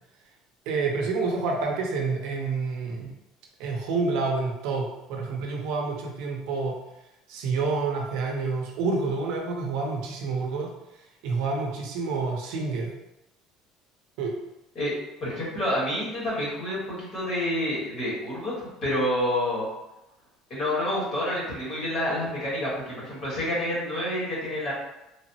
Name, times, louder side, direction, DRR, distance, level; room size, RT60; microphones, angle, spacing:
voice 1, 0.7-3.1 3.6-6.8 7.3-10.7 11.2-12.9 14.2-14.4, right 4 dB, 65° right, 1 dB, 0.6 m, -28 dB
voice 2, 15.2-19.7 20.5-24.7, left 1 dB, 35° left, -7 dB, 1.1 m, -28 dB
3.2 x 2.0 x 2.7 m, 0.92 s
cardioid pair, 175°, 0 cm